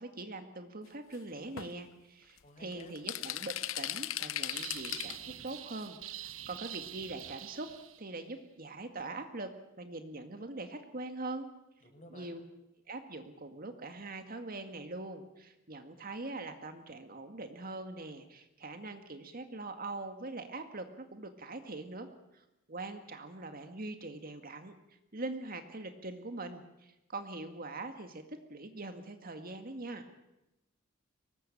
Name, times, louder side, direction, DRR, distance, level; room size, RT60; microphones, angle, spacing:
voice 1, 0.0-7.7 8.0-11.5 12.1-12.4 12.9-22.1 22.3-24.8 25.1-30.1, right 2 dB, 45° right, 7 dB, 2.0 m, -43 dB
sound 1, 1.1-1.2 1.6-1.7 2.4-2.5 2.7-5.4 5.8-5.9 6.7-6.8 7.2-7.4 7.7-7.8, left 13 dB, 75° left, 0.8 m, -38 dB
voice 2, 2.4-3.0 11.8-12.4, equal, 35° left, 4 dB, 5.6 m, -53 dB
sound 2, 4.5-8.2, right 12 dB, 75° right, 1.1 m, -45 dB
24.0 x 19.5 x 8.7 m, 0.92 s
head